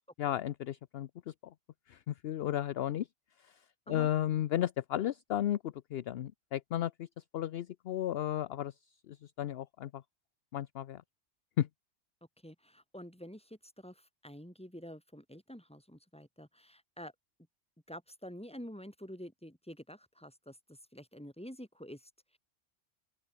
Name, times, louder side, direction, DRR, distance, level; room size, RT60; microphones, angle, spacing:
voice 1, 0.2-1.5 1.9-3.1 3.4-3.6 3.9-8.7 9.1-10.0 10.5-11.0 11.6-11.7, left 11 dB, 65° left, 0.8 m, -34 dB
voice 2, 12.4-17.1 17.9-22.4, equal, 5° left, 4.1 m, -48 dB
open air
omnidirectional pair, 1.2 m